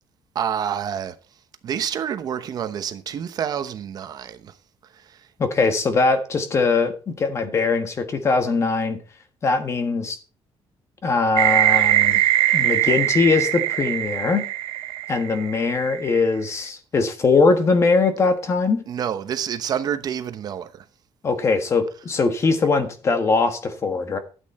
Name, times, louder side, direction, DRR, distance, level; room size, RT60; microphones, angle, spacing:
voice 1, 0.3-1.1 1.6-4.5 18.9-20.8, right 8 dB, 45° right, 0.9 m, -28 dB
voice 2, 5.4-9.0 9.4-10.2 11.0-12.2 12.5-14.5 15.1-18.8 21.2-24.2, left 4 dB, 30° left, 1.4 m, -21 dB
sound 1, 11.4-16.2, right 13 dB, 80° right, 0.9 m, -21 dB
12.5 x 8.6 x 4.3 m
cardioid pair, 165°, 10 cm